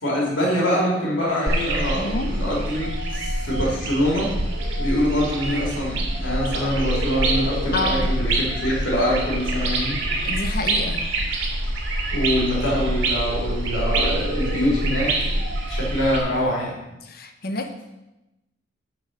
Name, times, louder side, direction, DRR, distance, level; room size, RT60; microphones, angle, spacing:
voice 1, 0.0-4.3 4.8-10.0 12.1-15.3 15.7-16.8, equal, 75° left, -3 dB, 2.8 m, -24 dB
sound 1, 1.5-16.2, right 1 dB, 70° right, 2.1 m, -25 dB
voice 2, 1.9-2.3 7.7-8.1 10.2-11.1 17.0-17.8, left 2 dB, 50° left, 6 dB, 0.8 m, -28 dB
9.6 x 4.8 x 6.5 m, 0.98 s
head